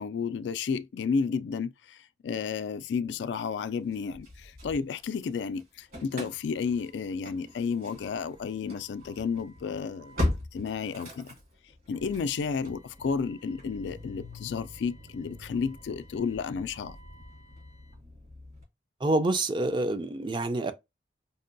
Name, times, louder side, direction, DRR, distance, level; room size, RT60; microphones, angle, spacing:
voice 1, 0.0-2.0 2.2-10.2 10.5-11.3 11.9-17.0, left 5 dB, 85° left, 0.3 m, -32 dB
Engine starting / Slam, 3.9-5.3 5.6-18.6, left 1 dB, 55° right, 1.7 m, -40 dB
voice 2, 19.0-20.7, right 2 dB, 25° right, 0.4 m, -27 dB
5.3 x 2.2 x 2.6 m
head